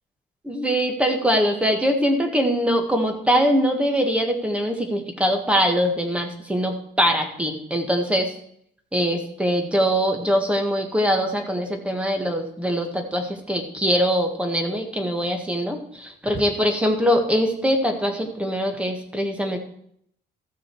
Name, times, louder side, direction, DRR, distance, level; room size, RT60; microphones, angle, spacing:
voice 1, 0.4-8.3 8.9-19.6, equal, 5° right, 4 dB, 1.6 m, -22 dB
14.0 x 6.2 x 4.6 m, 0.67 s
cardioid pair, 135°, 18 cm